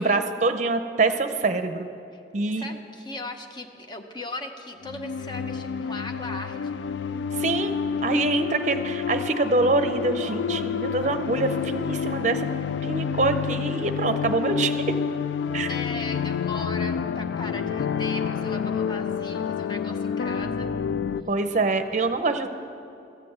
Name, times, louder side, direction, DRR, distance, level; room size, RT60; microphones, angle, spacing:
voice 1, 0.0-1.9 2.3-2.7 7.4-7.7 8.0-12.5 12.8-14.9 15.5-15.7 21.3-22.5, right 3 dB, 40° right, 8 dB, 0.7 m, -25 dB
voice 2, 2.5-6.8 15.7-20.8, left 2 dB, 25° left, 5 dB, 0.8 m, -37 dB
sound 1, 4.8-21.2, left 7 dB, 85° left, 0.3 m, -29 dB
14.5 x 7.6 x 7.8 m, 2.8 s
head